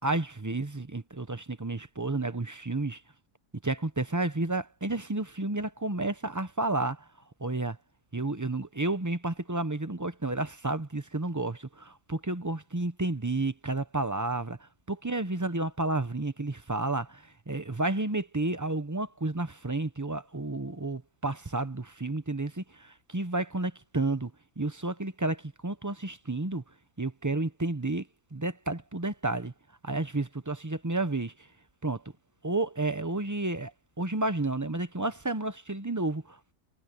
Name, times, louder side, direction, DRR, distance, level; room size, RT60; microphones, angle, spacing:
voice 1, 0.0-3.0 3.6-7.1 7.4-7.8 8.1-24.3 24.6-26.6 27.0-29.5 29.8-31.3 31.8-32.0 32.4-36.5, right 2 dB, 15° right, 0.7 m, -31 dB
omnidirectional pair, 1.5 m